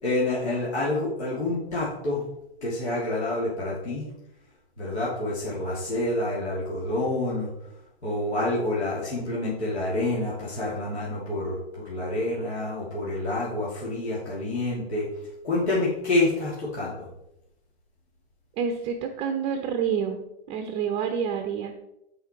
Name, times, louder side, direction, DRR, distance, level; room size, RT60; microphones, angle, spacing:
voice 1, 0.0-2.2 2.6-4.1 4.8-7.5 8.0-15.1 15.4-17.1, left 2 dB, 85° left, -6 dB, 2.8 m, -28 dB
voice 2, 18.6-20.2 20.5-21.8, right 7 dB, 20° right, 6 dB, 0.5 m, -28 dB
8.2 x 5.9 x 4.4 m, 0.86 s
hypercardioid pair, 135°, 32 cm